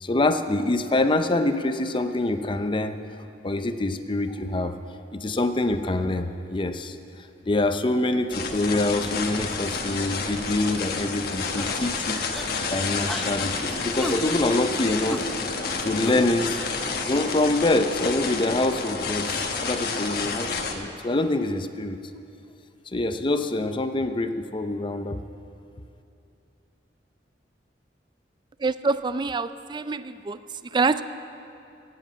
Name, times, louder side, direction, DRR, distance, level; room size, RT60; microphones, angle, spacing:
voice 1, 0.0-3.0 3.4-4.7 5.1-7.0 7.5-12.2 12.7-15.2 15.8-16.5 17.1-22.0 22.9-25.2, left 2 dB, 30° left, 9 dB, 0.6 m, -25 dB
sound 1, 8.3-20.7, left 4 dB, 60° left, 1.2 m, -30 dB
sound 2, 11.5-11.8 12.3-12.6 13.1-13.3 14.0-14.2 15.1-15.2 16.1-16.2, equal, ahead, 0.9 m, -32 dB
voice 2, 28.6-30.4 30.7-31.0, right 4 dB, 25° right, 13 dB, 0.4 m, -25 dB
16.5 x 7.9 x 8.4 m, 2.7 s
head